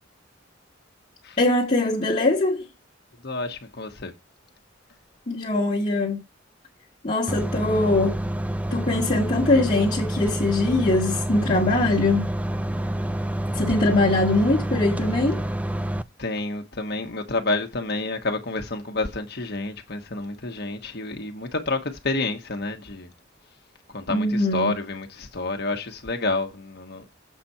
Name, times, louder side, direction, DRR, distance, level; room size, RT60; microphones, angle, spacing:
voice 1, 1.4-2.7 5.3-6.2 7.0-8.2 8.7-12.3 13.5-15.4 24.1-24.7, left 2 dB, 35° left, 1.4 m, -22 dB
voice 2, 3.2-4.1 16.2-23.1 23.9-27.1, left 2 dB, 55° left, 1.2 m, -29 dB
sound 1, 7.3-16.0, right 1 dB, 5° right, 0.4 m, -28 dB
7.5 x 4.3 x 5.5 m
head